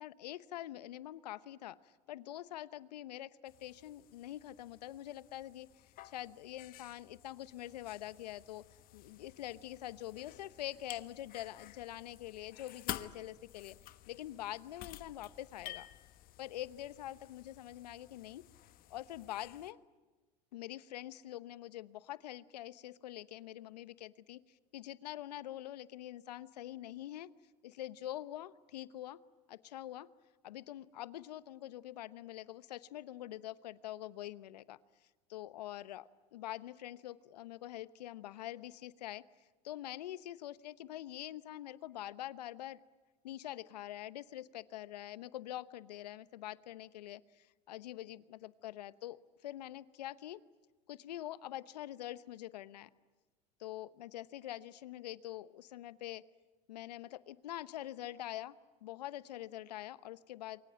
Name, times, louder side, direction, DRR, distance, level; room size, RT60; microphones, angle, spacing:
voice 1, 0.0-5.7 6.0-8.6 8.9-15.9 16.4-18.4 18.9-19.8 20.5-27.3 27.6-29.2 29.5-30.1 30.4-34.8 35.3-39.2 39.6-42.8 43.2-50.4 50.9-52.9 53.6-56.2 56.7-58.6 58.8-60.6, left 13 dB, 80° left, 16 dB, 1.0 m, -45 dB
sound 1, 3.5-19.7, left 14 dB, 45° left, 1.2 m, -51 dB
28.0 x 23.5 x 9.0 m, 1.2 s
hypercardioid pair, 95°, 21 cm